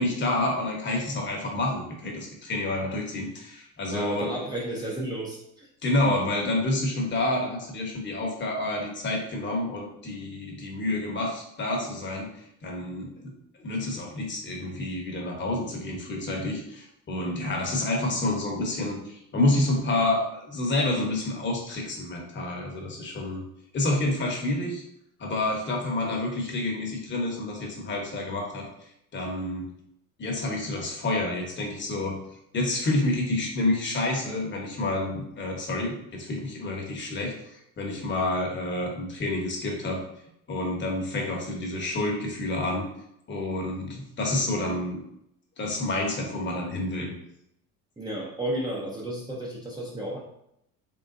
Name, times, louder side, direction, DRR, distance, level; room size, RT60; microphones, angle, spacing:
voice 1, 0.0-4.3 5.8-12.3 12.6-13.3 13.6-23.4 23.7-24.8 25.2-28.7 29.1-29.7 30.2-32.2 32.5-37.3 37.8-40.0 40.5-42.9 43.3-45.0 45.6-47.1, left 2 dB, 30° left, 0 dB, 1.1 m, -28 dB
voice 2, 3.9-5.7 48.0-50.2, right 1 dB, 10° right, -4 dB, 0.7 m, -32 dB
3.8 x 3.4 x 2.6 m, 0.76 s
cardioid pair, 110°, 35 cm